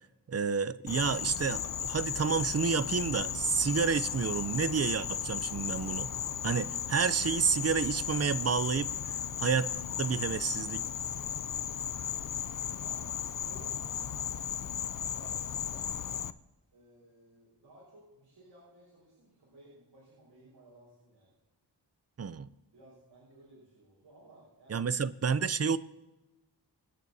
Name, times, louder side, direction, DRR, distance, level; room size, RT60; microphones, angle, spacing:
voice 1, 0.3-6.1 6.4-8.9 9.4-9.7 10.0-10.8 22.2-22.5 24.7-25.8, right 6 dB, 35° right, 0.5 m, -29 dB
Insect, 0.9-16.3, left 8 dB, 50° left, 0.5 m, -35 dB
voice 2, 12.8-14.3 14.9-15.9 16.7-21.3 22.7-24.9, right 1 dB, 75° right, 5.0 m, -57 dB
25.5 x 9.3 x 2.7 m
wide cardioid pair, 95°, 42 cm